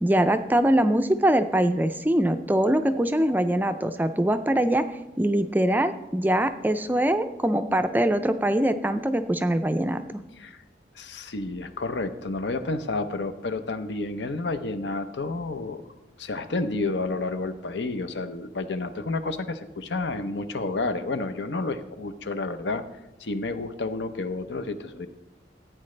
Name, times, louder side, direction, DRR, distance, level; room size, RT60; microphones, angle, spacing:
voice 1, 0.0-4.8 5.2-10.0, right 1 dB, 10° right, 9 dB, 0.4 m, -23 dB
voice 2, 11.0-15.8 16.2-22.8 23.2-25.1, left 3 dB, 80° left, 10 dB, 0.8 m, -30 dB
15.0 x 9.0 x 3.3 m, 1.0 s
head